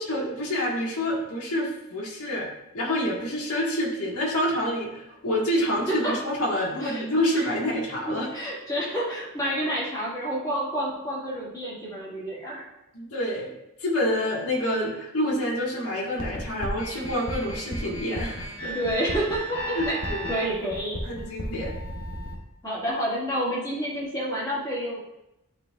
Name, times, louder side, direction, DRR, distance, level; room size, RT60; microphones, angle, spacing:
voice 1, 0.1-2.5 2.7-8.3 12.9-13.5 13.8-18.7 19.7-20.3 21.0-21.7, equal, 80° left, -4 dB, 1.6 m, -27 dB
voice 2, 8.1-12.6 18.6-20.0 20.3-21.0 22.6-25.0, equal, 15° left, -7 dB, 2.0 m, -29 dB
sound 1, 16.2-22.4, equal, 65° left, 1.0 m, -34 dB
11.0 x 4.1 x 2.4 m, 0.91 s
head